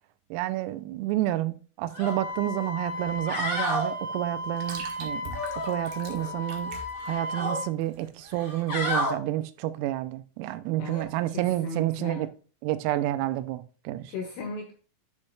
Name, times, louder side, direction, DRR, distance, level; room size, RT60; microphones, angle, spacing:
voice 1, 0.3-5.3 5.6-6.8 7.1-12.3 12.6-14.1, right 15 dB, 85° right, 3.3 m, -29 dB
sound 1, 1.9-2.1 2.5-2.6 3.1-3.9 5.3-6.3 6.6-7.6 8.3-9.1 10.8-11.0, left 1 dB, 30° left, 2.7 m, -31 dB
Wind instrument woodwind instrument, 2.0-7.7, left 1 dB, 40° right, 3.4 m, -35 dB
sound 2, 2.0-8.8, right 4 dB, 65° right, 2.7 m, -45 dB
voice 2, 10.8-12.3 14.1-14.7, left 4 dB, 80° left, 2.5 m, -37 dB
10.0 x 6.4 x 2.3 m
omnidirectional pair, 5.9 m